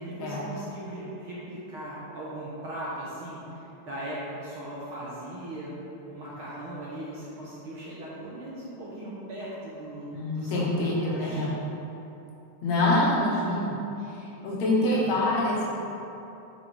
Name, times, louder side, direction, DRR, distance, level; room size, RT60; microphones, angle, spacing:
voice 1, 0.0-5.7 6.1-11.5 14.9-15.3, right 1 dB, 60° right, -7 dB, 1.5 m, -38 dB
voice 2, 10.1-11.5 12.6-13.7 14.1-15.7, left 1 dB, 70° left, -5 dB, 2.5 m, -26 dB
8.5 x 6.4 x 3.3 m, 2.9 s
omnidirectional pair, 3.4 m